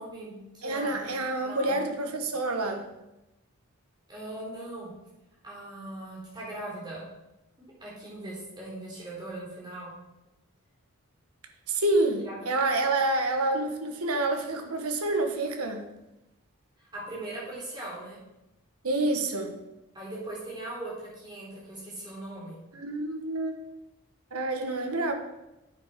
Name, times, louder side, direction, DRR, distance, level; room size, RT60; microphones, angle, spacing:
voice 1, 0.0-1.1 1.4-1.8 4.1-4.9 5.4-7.0 7.6-9.9 12.2-12.4 16.8-18.2 19.9-22.6, right 1 dB, 20° right, -5 dB, 4.0 m, -40 dB
voice 2, 0.6-2.8 11.7-15.8 18.8-19.6 22.7-23.5 24.3-25.1, right 2 dB, 80° right, 5 dB, 1.4 m, -28 dB
9.2 x 7.5 x 5.2 m, 0.95 s
head